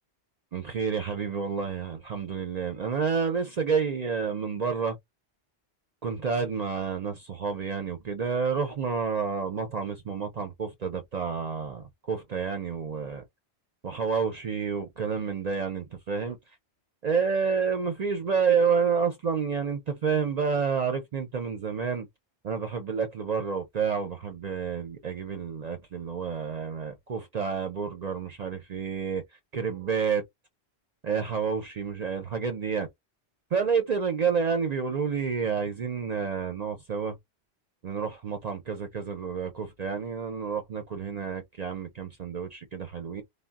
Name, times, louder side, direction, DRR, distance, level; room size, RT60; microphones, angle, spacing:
voice 1, 0.5-5.0 6.0-13.2 13.8-16.4 17.0-22.1 22.4-29.2 29.5-30.2 31.0-32.9 33.5-37.2 37.8-43.2, right 6 dB, 55° right, 0.5 m, -29 dB
3.5 x 2.1 x 2.3 m
omnidirectional pair, 1.1 m